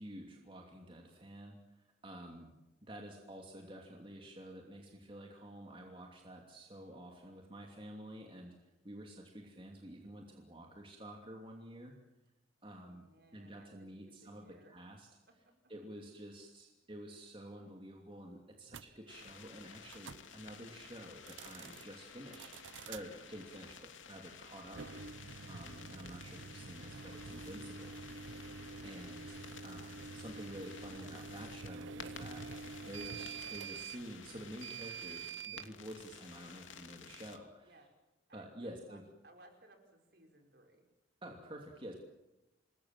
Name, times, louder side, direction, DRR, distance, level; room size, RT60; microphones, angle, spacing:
voice 1, 0.0-2.5 2.8-12.0 12.6-13.0 13.3-15.1 15.7-28.0 28.2-28.5 28.8-37.8 38.3-39.0 41.2-41.9, right 1 dB, 25° right, 1 dB, 2.8 m, -50 dB
voice 2, 12.6-14.7 15.3-15.5 37.6-37.9 38.3-40.8, right 1 dB, 55° right, 4 dB, 5.4 m, -63 dB
sound 1, 18.7-18.9 19.9-20.2 21.1-21.8 22.3-23.0 24.6-35.7, right 5 dB, 75° right, 0.8 m, -47 dB
sound 2, 19.1-37.4, left 6 dB, 85° left, 2.8 m, -53 dB
28.5 x 21.0 x 7.5 m, 0.97 s
head